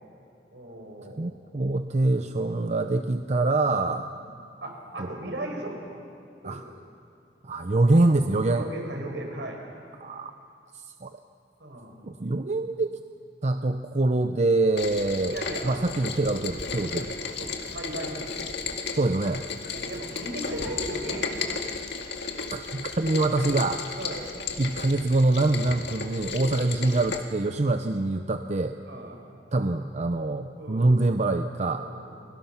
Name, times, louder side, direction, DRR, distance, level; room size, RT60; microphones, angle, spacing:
voice 1, 0.5-1.3 4.2-4.3 4.6-6.0 6.4-6.6 8.5-9.6 11.6-12.0 15.3-16.0 17.3-18.4 19.7-21.4 24.0-24.3 26.5-26.7 28.9-29.2 30.6-30.9 31.8-32.1, right 1 dB, 75° right, 1 dB, 5.5 m, -37 dB
voice 2, 1.2-4.1 5.0-5.1 6.4-6.6 7.4-8.6 10.0-10.3 11.0-11.2 12.0-13.0 13.4-15.4 15.6-17.1 18.9-19.4 22.5-23.8 24.6-28.8 29.5-31.9, right 2 dB, 40° right, 7 dB, 0.7 m, -25 dB
Rain, 14.8-27.2, left 4 dB, 70° left, 2.1 m, -34 dB
29.5 x 23.0 x 5.9 m, 2.3 s
head